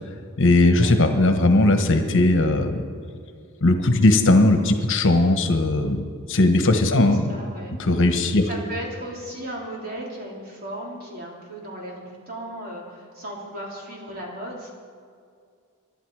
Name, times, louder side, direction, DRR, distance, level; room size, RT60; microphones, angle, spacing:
voice 1, 0.4-2.8 3.6-7.2 7.8-8.5, left 2 dB, 65° left, 6 dB, 1.3 m, -18 dB
voice 2, 7.0-7.8 8.5-14.7, right 1 dB, 45° right, -2 dB, 3.7 m, -36 dB
24.5 x 11.0 x 4.9 m, 2.2 s
head